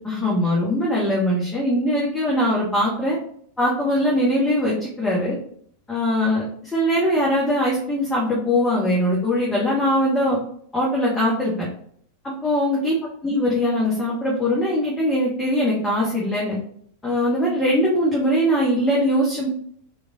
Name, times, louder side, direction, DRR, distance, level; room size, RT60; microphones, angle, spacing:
voice 1, 0.0-3.2 3.6-5.4 5.9-10.4 10.7-11.7 12.2-13.0 13.2-16.5 17.0-19.5, equal, 15° left, -5 dB, 1.0 m, -21 dB
3.8 x 3.2 x 2.6 m, 0.62 s
figure-of-eight pair, 90°, 0 cm